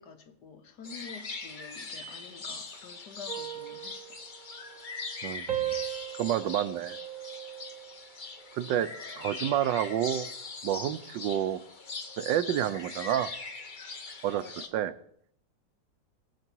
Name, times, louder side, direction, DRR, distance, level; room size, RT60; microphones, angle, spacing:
voice 1, 0.0-4.2 8.6-9.2 14.4-14.7, left 5 dB, 65° left, 8 dB, 1.6 m, -48 dB
sound 1, 0.8-14.7, left 4 dB, 35° left, 0.9 m, -41 dB
sound 2, 3.3-5.2 5.5-8.0 8.5-8.9, right 12 dB, 55° right, 1.2 m, -38 dB
voice 2, 5.2-5.7 6.1-7.0 8.5-8.9 9.2-10.3 10.6-11.6 12.2-13.3 14.2-14.4 14.7-14.9, right 11 dB, 85° right, 13 dB, 1.3 m, -29 dB
20.0 x 6.9 x 4.6 m, 0.69 s
omnidirectional pair, 2.0 m